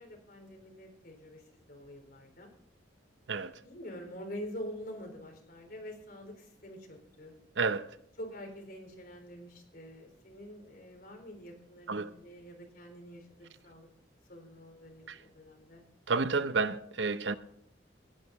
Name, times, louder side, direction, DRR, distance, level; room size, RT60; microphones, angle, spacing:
voice 1, 0.0-2.5 3.6-7.4 8.2-13.9 14.3-15.8 16.3-16.6, equal, 55° left, 3.9 m, -46 dB
voice 2, 7.6-7.9 11.9-12.1 15.1-15.2 16.1-17.4, right 4 dB, 85° right, 0.7 m, -30 dB
16.0 x 10.0 x 4.2 m
head